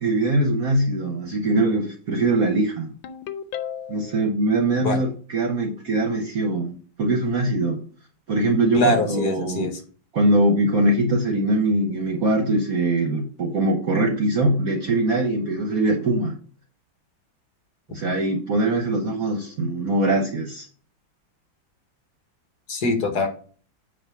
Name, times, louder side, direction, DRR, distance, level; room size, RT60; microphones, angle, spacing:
voice 1, 0.0-2.9 3.9-7.8 8.3-9.7 10.1-16.3 17.9-20.7, right 2 dB, 55° right, 3 dB, 1.2 m, -22 dB
Ringtone, 3.0-4.2, left 9 dB, 85° left, 1.5 m, -33 dB
voice 2, 8.7-9.7 22.7-23.3, left 1 dB, 55° left, 5 dB, 1.8 m, -22 dB
8.6 x 3.0 x 5.9 m, 0.42 s
omnidirectional pair, 2.1 m